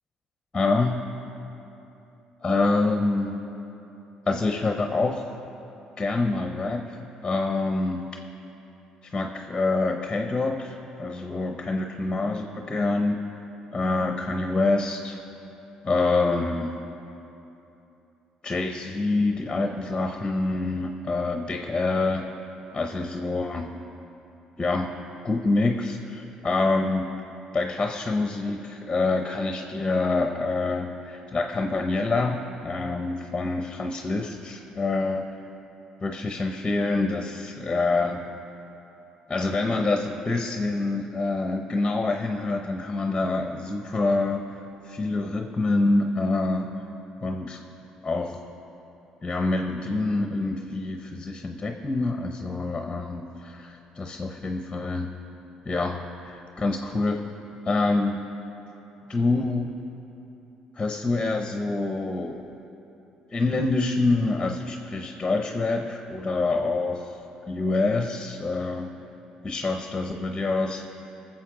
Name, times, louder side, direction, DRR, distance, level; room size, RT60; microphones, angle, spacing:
voice 1, 0.5-1.0 2.4-3.4 4.3-5.2 6.0-8.1 9.0-13.2 13.7-15.2 15.8-16.7 18.4-22.3 22.7-23.7 24.6-24.9 25.2-27.1 27.5-35.2 36.0-38.3 39.3-44.5 44.8-46.7 47.2-47.6 48.0-48.4 49.2-55.1 55.6-57.2 57.6-58.2 59.1-59.7 60.8-62.5 63.3-67.2 67.5-68.9 69.4-70.9, left 3 dB, 20° left, 4 dB, 0.8 m, -26 dB
20.0 x 7.4 x 3.8 m, 3.0 s
cardioid pair, 95°, 2 cm